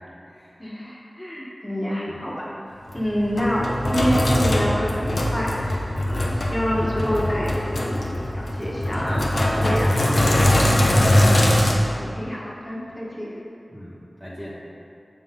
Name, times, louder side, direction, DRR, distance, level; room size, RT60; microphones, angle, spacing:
voice 1, 0.6-2.5 2.9-8.1 8.6-9.3 9.6-9.9 12.1-13.4, equal, 20° left, -5 dB, 1.4 m, -27 dB
Sink (filling or washing), 2.9-11.7, left 1 dB, 70° left, 0.8 m, -21 dB
voice 2, 9.0-11.5 12.0-12.1 12.8-12.9 13.7-14.6, equal, 5° left, -8 dB, 1.0 m, -33 dB
7.2 x 5.6 x 3.8 m, 2.7 s
wide cardioid pair, 75°, 0 cm